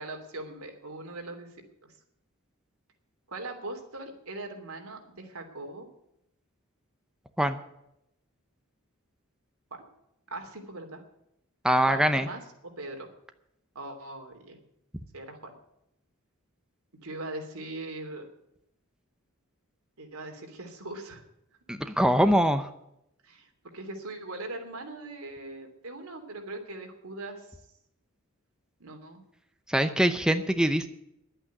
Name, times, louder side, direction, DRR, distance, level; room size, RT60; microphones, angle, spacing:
voice 1, 0.0-1.5 1.8-1.9 3.3-5.9 9.7-9.8 10.3-11.0 11.9-12.4 12.8-13.1 13.7-14.6 15.1-15.5 17.0-18.3 20.0-21.2 23.2-27.5 28.8-29.2, right 2 dB, 85° right, 4 dB, 2.9 m, -40 dB
voice 2, 11.6-12.3 21.7-22.7 29.7-30.9, equal, 5° right, 8 dB, 0.7 m, -23 dB
11.0 x 8.9 x 9.5 m, 0.80 s
head